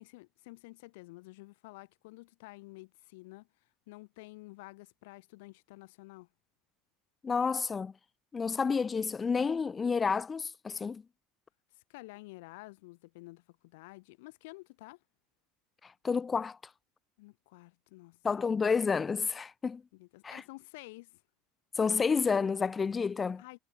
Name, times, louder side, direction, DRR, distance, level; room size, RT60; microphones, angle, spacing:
voice 1, 0.0-3.5 3.9-6.3 11.7-15.0 17.2-18.2 19.9-21.2 23.4-23.6, left 23 dB, 70° left, 7.8 m, -50 dB
voice 2, 7.2-7.9 8.3-11.0 15.8-16.6 18.2-19.8 20.2-20.4 21.8-23.4, left 5 dB, 25° left, 2.0 m, -30 dB
hypercardioid pair, 70°, 0 cm